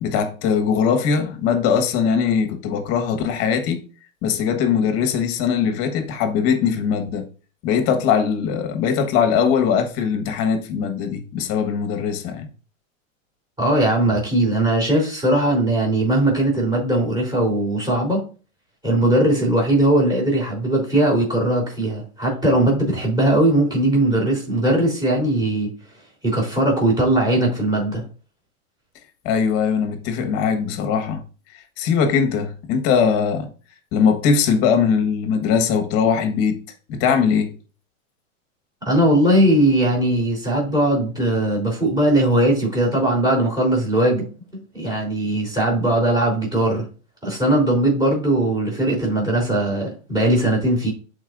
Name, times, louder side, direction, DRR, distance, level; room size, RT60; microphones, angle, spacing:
voice 1, 0.0-3.8 4.2-7.2 7.6-12.5 29.2-31.2 31.8-33.5 33.9-36.6 36.9-37.5, left 6 dB, 35° left, 1.4 m, -20 dB
voice 2, 13.6-18.2 18.8-25.7 26.2-28.0 38.9-44.3 44.7-46.9 47.2-50.9, right 1 dB, 10° right, 3.7 m, -19 dB
11.5 x 4.6 x 2.6 m
supercardioid pair, 145°, 41 cm